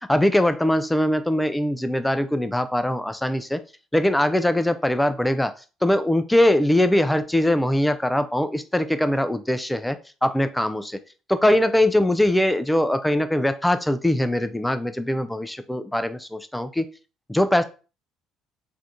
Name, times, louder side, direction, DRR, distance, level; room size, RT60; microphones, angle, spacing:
voice 1, 0.0-3.6 3.9-5.5 5.8-11.0 11.3-16.9 17.3-17.6, left 1 dB, 5° left, 10 dB, 0.3 m, -22 dB
3.3 x 2.5 x 2.7 m, 0.34 s
hypercardioid pair, 55°, 0 cm